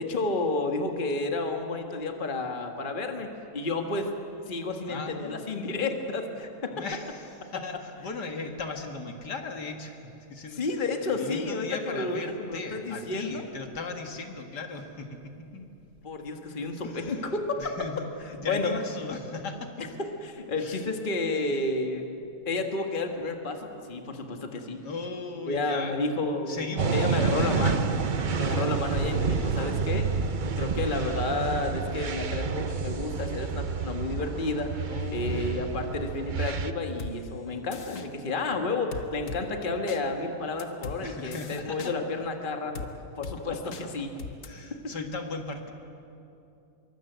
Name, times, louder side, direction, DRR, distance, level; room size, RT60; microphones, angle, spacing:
voice 1, 0.0-4.1 4.5-6.8 10.5-13.5 16.0-17.7 18.5-18.7 19.8-22.1 22.5-24.8 25.5-27.9 28.3-30.1 30.6-34.7 35.1-42.8 43.2-44.1, left 3 dB, 30° left, 4 dB, 1.8 m, -31 dB
voice 2, 4.9-5.4 6.7-10.6 11.0-15.7 16.8-17.2 17.6-19.7 20.4-20.9 24.8-26.0 26.5-28.4 29.3-29.7 34.9-36.1 41.0-41.9 44.4-45.7, left 3 dB, 75° left, 4 dB, 2.4 m, -38 dB
sound 1, 26.8-36.7, right 5 dB, 45° right, 0.6 m, -29 dB
sound 2, 37.0-37.1 37.7-38.1 38.9-39.4 39.9-40.0 40.6-41.0 41.3-41.9 42.7-42.9 43.2-43.4 43.7-43.8 44.2-44.5, left 5 dB, 50° left, 1.5 m, -38 dB
25.5 x 23.0 x 8.0 m, 2.7 s
omnidirectional pair, 1.8 m